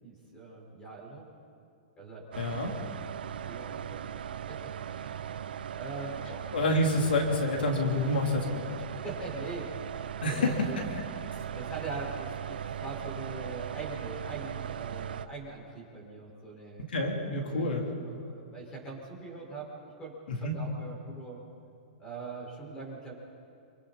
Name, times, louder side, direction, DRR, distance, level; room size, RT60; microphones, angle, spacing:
voice 1, 0.0-1.3 2.0-2.3 3.4-4.2 4.5-5.4 5.7-6.9 7.3-7.6 9.0-10.8 11.5-16.9 17.5-17.7 18.1-19.7 20.0-21.4 22.0-23.1, right 3 dB, 15° left, -2 dB, 5.3 m, -42 dB
sound 1, 2.3-15.3, right 9 dB, 80° right, 0.9 m, -38 dB
voice 2, 2.4-2.7 6.5-8.8 10.2-10.9 16.9-17.8 20.3-20.6, left 1 dB, 90° left, 1 dB, 3.7 m, -28 dB
28.5 x 26.0 x 4.4 m, 2.5 s
hypercardioid pair, 165°, 5 cm